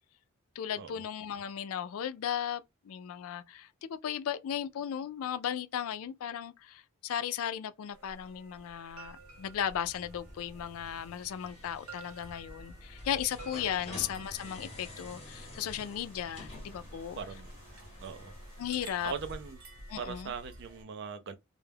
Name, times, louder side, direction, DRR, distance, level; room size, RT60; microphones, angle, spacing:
voice 1, 0.6-17.2 18.6-19.1 19.9-20.3, left 9 dB, 75° left, 0.3 m, -36 dB
sound 1, 7.9-20.8, right 1 dB, 90° right, 0.8 m, -50 dB
sound 2, 8.9-19.6, left 2 dB, 30° left, 0.7 m, -51 dB
sound 3, 14.4-19.5, equal, 10° right, 0.6 m, -58 dB
voice 2, 17.2-17.5 18.0-18.3 19.0-19.6 20.0-21.4, right 6 dB, 55° right, 0.4 m, -40 dB
2.2 x 2.0 x 3.2 m
head